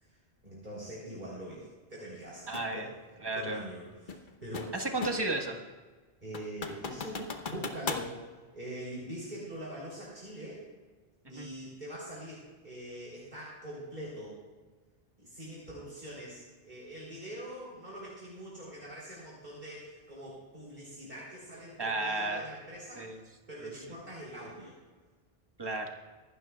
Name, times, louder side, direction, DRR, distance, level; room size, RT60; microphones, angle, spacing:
voice 1, 0.0-2.9 3.3-4.8 6.2-8.2 8.5-10.7 11.3-14.4 15.2-23.2 23.5-24.8, right 1 dB, 50° right, -7 dB, 3.7 m, -43 dB
sound 1, 2.5-2.7 4.1-5.4 5.8-5.9 6.3-8.1, left 4 dB, 55° left, 1.1 m, -38 dB
voice 2, 2.5-2.9 3.2-3.6 4.7-5.6 11.3-11.5 21.8-22.4 22.9-23.2 23.6-23.7 25.6-25.9, right 2 dB, 25° right, 2 dB, 1.4 m, -33 dB
24.0 x 12.5 x 2.3 m, 1.4 s
omnidirectional pair, 1.0 m